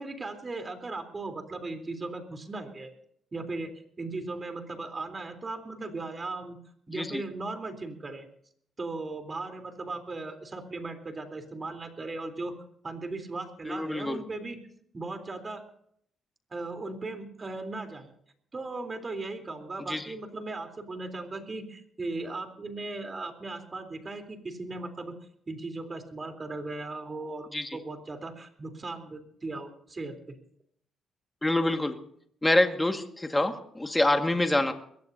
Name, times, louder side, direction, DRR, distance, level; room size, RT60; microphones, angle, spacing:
voice 1, 0.0-2.9 3.3-6.6 6.9-8.3 8.8-12.6 12.8-14.6 14.9-15.6 16.5-18.1 18.5-25.1 25.5-30.4, right 3 dB, 30° right, 6 dB, 3.6 m, -37 dB
voice 2, 13.7-14.2 19.9-20.1 27.5-27.7 31.4-32.0 32.4-34.7, left 1 dB, 10° left, 5 dB, 1.8 m, -26 dB
22.5 x 17.5 x 2.8 m, 0.66 s
cardioid pair, 90°, 0 cm